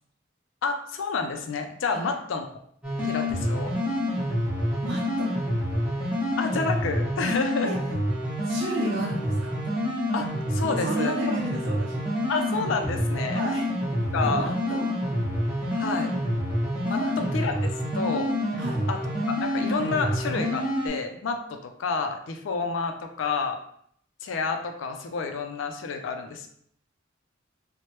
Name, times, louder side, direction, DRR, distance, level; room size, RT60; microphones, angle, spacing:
voice 1, 0.6-2.5 3.0-3.8 6.4-7.7 10.1-11.1 12.3-13.4 14.1-14.5 15.7-16.1 16.9-17.0 17.3-17.5 17.9-18.3 18.9-19.0 19.3-23.6 24.2-26.5, left 4 dB, 80° left, 6 dB, 0.4 m, -29 dB
sound 1, 2.8-20.9, equal, 5° right, 0.8 m, -27 dB
voice 2, 4.8-5.3 7.6-7.8 8.4-9.6 10.6-12.0 13.3-13.7 13.9-14.9 16.9-17.1 18.6-18.8, right 2 dB, 70° right, -5 dB, 0.6 m, -33 dB
3.1 x 2.1 x 2.9 m, 0.67 s
head